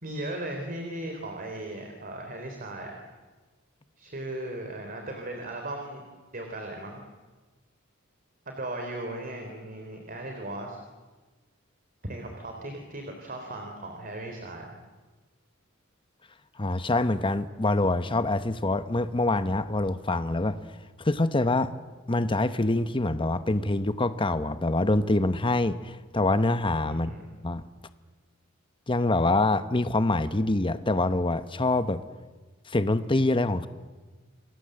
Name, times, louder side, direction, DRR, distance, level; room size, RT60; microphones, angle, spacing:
voice 1, 0.0-3.1 4.0-6.0 6.3-7.0 8.4-10.8 12.0-14.8 26.9-27.2, right 1 dB, 45° right, 3 dB, 3.4 m, -37 dB
voice 2, 16.6-20.6 21.0-21.7 22.1-27.1 27.4-27.6 28.9-32.0 32.7-33.7, left 2 dB, 25° left, 11 dB, 1.0 m, -25 dB
28.5 x 22.0 x 7.8 m, 1.3 s
head